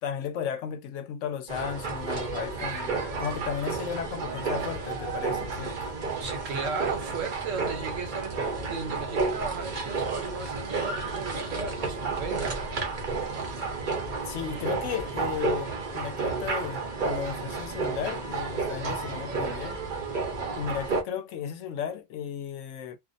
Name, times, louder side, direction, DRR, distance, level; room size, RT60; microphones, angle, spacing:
voice 1, 0.0-5.9 14.2-19.8 20.5-23.0, left 8 dB, 75° left, 0.9 m, -34 dB
sound 1, 1.5-21.0, right 4 dB, 45° right, 0.7 m, -31 dB
voice 2, 6.2-12.7, right 5 dB, 75° right, 1.2 m, -36 dB
2.5 x 2.0 x 2.5 m
omnidirectional pair, 1.3 m